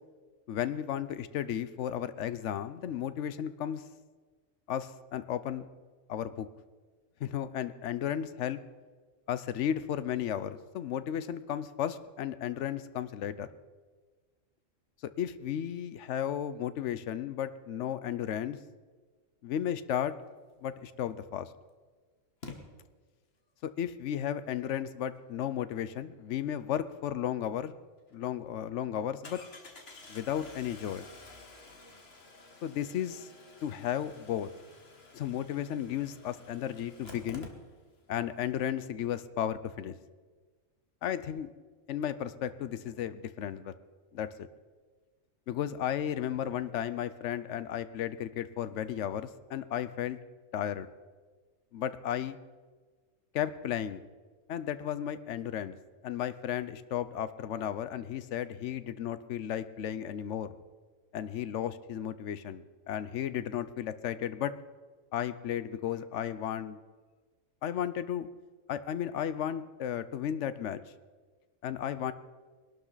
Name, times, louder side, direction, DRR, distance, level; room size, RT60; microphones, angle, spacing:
voice 1, 0.5-3.8 4.7-5.7 6.1-6.5 7.2-8.6 9.3-13.5 15.2-18.6 19.4-20.2 20.6-21.5 23.6-27.7 28.1-29.4 30.1-31.1 32.6-33.3 33.6-34.5 35.1-37.5 38.1-40.0 41.0-41.5 41.9-43.7 44.1-44.5 45.5-50.2 50.5-50.9 51.7-52.4 53.3-54.0 54.5-55.8 56.0-60.5 61.1-64.5 65.1-66.8 67.6-68.3 68.7-70.8 71.6-72.1, left 10 dB, 70° left, 14 dB, 1.0 m, -34 dB
Engine starting, 20.9-21.0 22.4-22.6 27.6-27.7 28.1-28.2 29.2-38.0 38.3-38.4 38.6-38.7, left 3 dB, 50° left, 1.7 m, -50 dB
20.5 x 12.0 x 4.0 m, 1.4 s
omnidirectional pair, 1.3 m